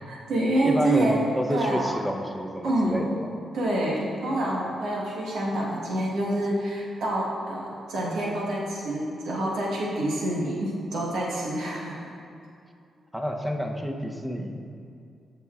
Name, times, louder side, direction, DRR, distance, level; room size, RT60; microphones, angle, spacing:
voice 1, 0.1-1.2 1.5-2.0 2.6-3.0 3.5-12.0, right 1 dB, 85° right, -5 dB, 1.3 m, -27 dB
voice 2, 0.6-3.3 13.1-14.6, equal, 5° right, 2 dB, 0.7 m, -29 dB
13.0 x 5.6 x 2.4 m, 2.4 s
cardioid pair, 90°, 0 cm